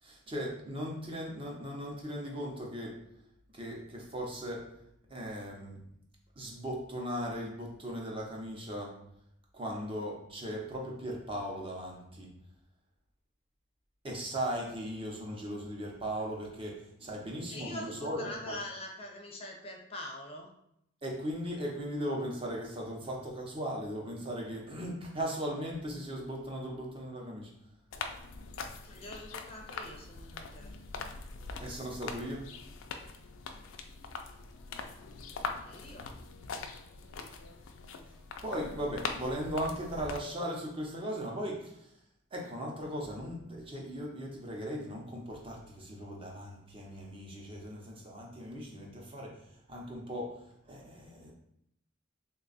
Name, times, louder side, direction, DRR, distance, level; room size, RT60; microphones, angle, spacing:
voice 1, 0.0-3.0 3.5-4.7 5.1-5.8 6.4-9.0 9.5-12.3 14.0-18.6 21.0-27.5 31.6-32.5 38.4-42.0 42.3-51.3, equal, 30° right, -1 dB, 0.7 m, -38 dB
voice 2, 17.5-20.5 28.8-30.8 35.2-36.1, left 1 dB, 30° left, 0 dB, 0.5 m, -44 dB
sound 1, 27.9-40.2, left 4 dB, 90° left, 0.4 m, -42 dB
3.2 x 2.3 x 3.9 m, 0.75 s
head